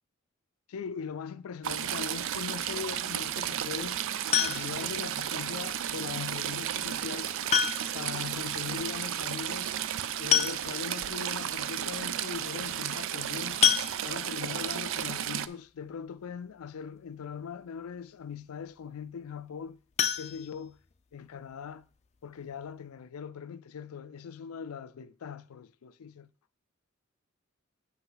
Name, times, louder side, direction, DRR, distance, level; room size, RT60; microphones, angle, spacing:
voice 1, 0.7-4.0 4.4-7.3 7.9-9.8 10.2-13.7 14.0-19.8 20.2-20.8 21.1-21.9 22.2-26.3, left 6 dB, 85° left, 0.4 m, -40 dB
Stream / Trickle dribble, 1.6-15.5, right 10 dB, 65° right, 0.4 m, -33 dB
sound 1, 4.3-5.0 6.4-6.5 7.5-8.1 8.4-8.5 8.8-8.9 9.9-10.0 10.3-11.0 11.6-11.7 12.0-12.2 13.6-14.5 19.9-21.1 21.5-21.6 22.0-22.1 22.5-22.6, left 9 dB, 30° left, 0.5 m, -28 dB
8.2 x 5.9 x 3.9 m
head